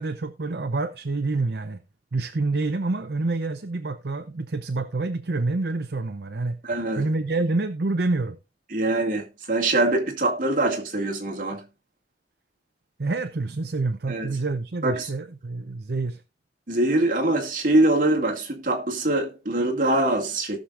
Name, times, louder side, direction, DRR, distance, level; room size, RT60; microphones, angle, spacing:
voice 1, 0.0-1.8 2.1-6.6 7.0-8.4 13.0-16.2, right 3 dB, 65° right, 0.7 m, -27 dB
voice 2, 6.6-7.0 8.7-11.6 14.1-14.3 14.8-15.1 16.7-20.6, right 2 dB, 50° right, 2.2 m, -23 dB
18.5 x 6.3 x 2.5 m
head